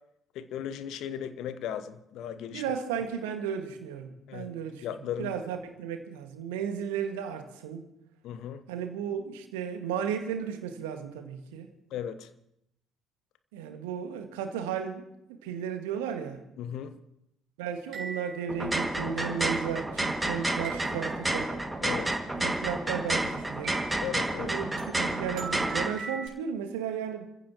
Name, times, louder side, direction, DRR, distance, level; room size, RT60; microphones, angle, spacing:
voice 1, 0.3-2.6 4.3-4.5 4.8-5.3 8.2-8.6 11.9-12.3 16.6-17.0 21.8-22.2 24.0-24.5, left 9 dB, 55° left, 12 dB, 1.0 m, -36 dB
voice 2, 2.5-4.9 5.2-7.8 8.7-11.7 13.5-15.0 15.3-16.4 17.6-21.5 22.4-23.8 24.4-27.3, right 8 dB, 70° right, 6 dB, 1.9 m, -34 dB
sound 1, 17.9-18.7 20.6-21.4 23.6-24.2 24.8-26.3, right 5 dB, 50° right, 5.2 m, -40 dB
sound 2, 18.5-25.9, right 1 dB, 10° right, 2.1 m, -30 dB
28.5 x 15.5 x 3.0 m, 0.79 s
figure-of-eight pair, 50°, 0 cm